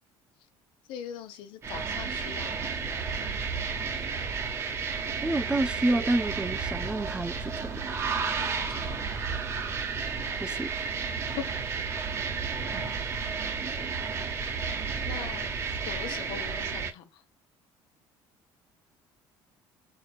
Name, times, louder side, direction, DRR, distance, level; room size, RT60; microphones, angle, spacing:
voice 1, 0.9-2.7 8.4-9.0 11.1-11.5 15.1-17.2, left 9 dB, 70° left, 1.1 m, -41 dB
sound 1, 1.6-16.9, right 5 dB, 30° right, 1.1 m, -32 dB
voice 2, 5.2-7.7 10.4-10.7, right 2 dB, 10° right, 0.3 m, -28 dB
4.9 x 3.9 x 2.3 m
cardioid pair, 140°, 9 cm